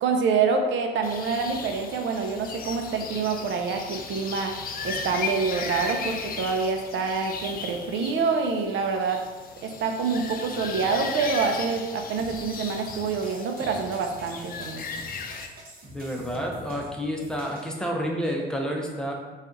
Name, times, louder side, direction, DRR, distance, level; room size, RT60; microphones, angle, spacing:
voice 1, 0.0-4.5 4.8-9.2 9.6-14.9, right 5 dB, 70° right, 4 dB, 0.5 m, -26 dB
sound 1, 1.0-15.5, left 5 dB, 50° left, 0.5 m, -36 dB
sound 2, 12.2-17.7, right 1 dB, 45° right, 1.1 m, -45 dB
voice 2, 15.9-19.1, equal, 5° left, -1 dB, 0.8 m, -29 dB
4.1 x 2.4 x 3.9 m, 1.3 s
cardioid pair, 90°, 20 cm